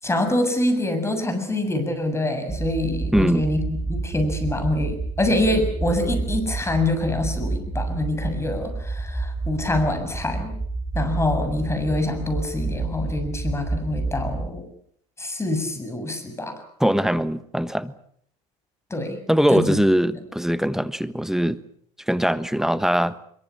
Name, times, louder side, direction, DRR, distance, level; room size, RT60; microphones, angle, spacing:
voice 1, 0.0-3.6 3.9-10.6 10.9-14.7 15.2-16.6 18.9-19.2 19.5-19.8, left 1 dB, 15° left, 8 dB, 7.2 m, -25 dB
sound 1, 2.5-14.5, right 3 dB, 20° right, 5.0 m, -29 dB
voice 2, 3.1-3.4 16.8-17.9 19.3-21.6 22.1-23.2, equal, ahead, 13 dB, 1.3 m, -21 dB
24.5 x 23.5 x 7.2 m, 0.65 s
supercardioid pair, 100°, 20 cm